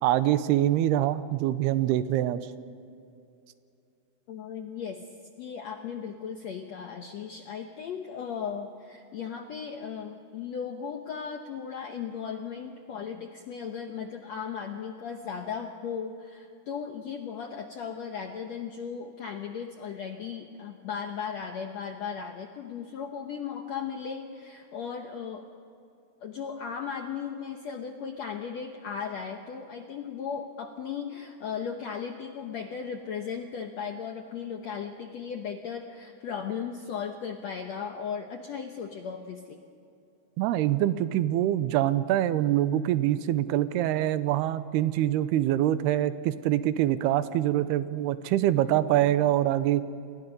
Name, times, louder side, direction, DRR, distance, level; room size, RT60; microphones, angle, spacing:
voice 1, 0.0-2.4 40.4-49.8, right 13 dB, 90° right, 13 dB, 2.8 m, -25 dB
voice 2, 4.3-5.1 5.4-25.4 26.2-39.6, left 7 dB, 75° left, 4 dB, 1.6 m, -36 dB
29.0 x 21.0 x 5.4 m, 2.6 s
omnidirectional pair, 4.5 m